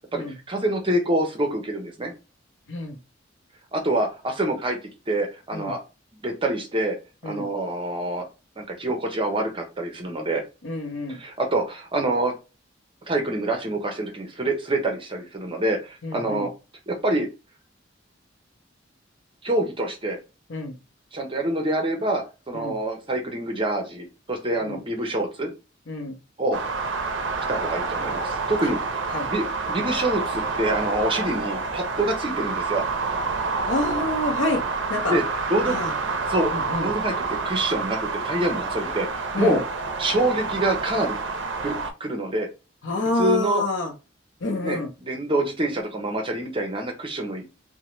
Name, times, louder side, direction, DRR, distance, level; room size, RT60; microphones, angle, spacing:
voice 1, 0.1-2.1 3.7-4.8 5.1-5.8 6.2-7.0 7.2-8.3 8.6-10.4 11.1-12.3 13.1-16.5 16.9-17.3 19.4-20.2 21.1-25.5 26.4-26.6 27.5-32.8 35.1-35.8 36.3-36.5 36.8-39.6 40.0-41.2 41.6-42.5 43.2-43.6 44.6-47.4, right 1 dB, 25° right, 0.7 m, -26 dB
voice 2, 10.6-11.2 16.0-16.5 20.5-20.8 22.5-22.8 24.6-24.8 25.9-26.1 28.6-28.7 29.1-29.3 33.7-34.6 34.9-35.2 35.7-35.9 36.5-36.9 39.3-39.6 42.8-43.9 44.4-44.9, left 2 dB, 70° left, 0.7 m, -27 dB
sound 1, 26.5-41.9, right 4 dB, 65° right, 0.5 m, -28 dB
2.7 x 2.1 x 3.0 m
head